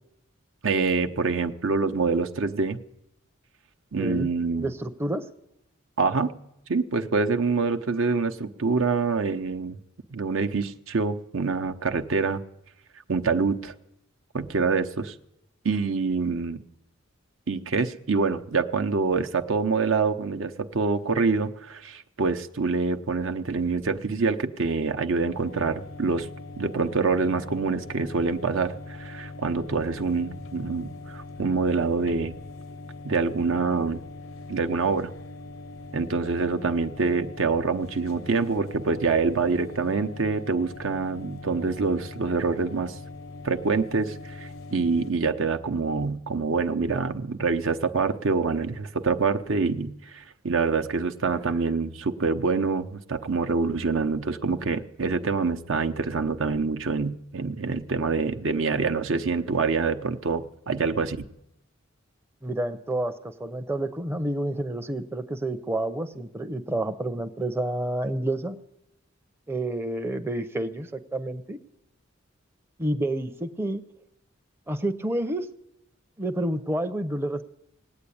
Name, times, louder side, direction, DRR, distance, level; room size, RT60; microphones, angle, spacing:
voice 1, 0.6-2.8 3.9-4.7 6.0-6.3 6.7-9.8 10.1-12.4 13.1-13.7 14.3-15.1 15.6-16.6 17.5-26.3 26.6-32.3 33.0-34.0 34.5-35.1 35.9-42.9 43.4-61.2, right 4 dB, 75° right, 8 dB, 0.8 m, -26 dB
voice 2, 4.0-4.3 4.6-5.2 62.4-68.6 69.5-71.6 72.8-73.8 74.7-75.5 76.2-77.4, right 1 dB, 10° right, 6 dB, 0.6 m, -29 dB
sound 1, 25.3-45.1, left 2 dB, 80° left, 0.7 m, -41 dB
19.0 x 8.7 x 8.5 m, 0.85 s
head